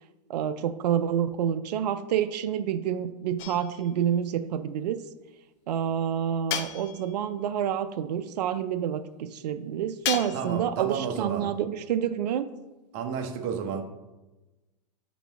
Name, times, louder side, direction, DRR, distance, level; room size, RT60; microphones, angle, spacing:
voice 1, 0.3-5.0 5.7-12.5, right 9 dB, 80° right, 10 dB, 0.4 m, -28 dB
sound 1, 3.4-4.0 6.5-7.3 10.0-10.7, left 8 dB, 50° left, 0.6 m, -34 dB
voice 2, 10.3-11.5 12.9-13.8, right 6 dB, 45° right, 4 dB, 0.9 m, -32 dB
9.1 x 4.1 x 3.5 m, 1.1 s
hypercardioid pair, 130°, 20 cm